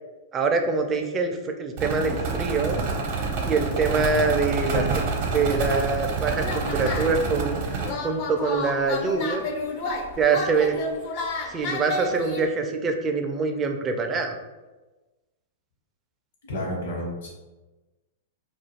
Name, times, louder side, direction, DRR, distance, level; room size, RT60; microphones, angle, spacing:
voice 1, 0.3-2.8 3.4-7.6 8.0-9.4 10.2-10.8 11.5-14.3, right 4 dB, 25° right, 4 dB, 0.4 m, -25 dB
sound 1, 1.8-7.9, right 4 dB, 55° right, 0.7 m, -27 dB
sound 2, 6.3-7.2 7.8-12.5, left 2 dB, 50° left, 0.5 m, -31 dB
voice 2, 16.4-17.3, left 1 dB, 70° left, -3 dB, 1.0 m, -31 dB
2.4 x 2.3 x 3.2 m, 1.1 s
hypercardioid pair, 115°, 0 cm